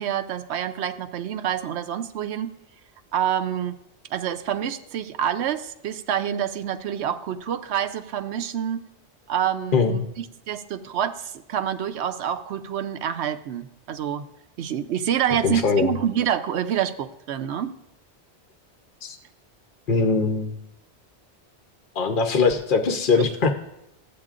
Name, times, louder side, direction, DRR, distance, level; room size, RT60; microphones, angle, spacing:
voice 1, 0.0-2.5 3.1-3.8 4.1-8.9 9.3-14.2 14.6-17.7, right 9 dB, 80° right, 10 dB, 0.9 m, -27 dB
voice 2, 15.4-15.9 19.0-19.2 19.9-20.6 21.9-23.5, left 4 dB, 55° left, 5 dB, 0.9 m, -21 dB
13.5 x 8.6 x 2.5 m, 0.85 s
omnidirectional pair, 1.1 m